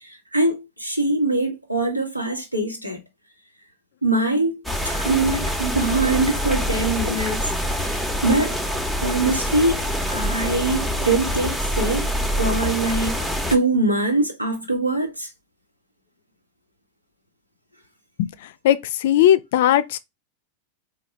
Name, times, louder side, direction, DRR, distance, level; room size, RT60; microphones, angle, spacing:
voice 1, 0.0-3.0 4.0-7.4 7.7-8.6 9.0-9.8 10.1-12.0 12.4-15.3, right 2 dB, 85° right, 1.0 m, -23 dB
sound 1, 4.7-13.6, equal, 5° right, 0.7 m, -25 dB
voice 2, 18.6-20.0, left 11 dB, 55° left, 0.4 m, -18 dB
4.4 x 2.3 x 4.4 m
figure-of-eight pair, 90°, 0 cm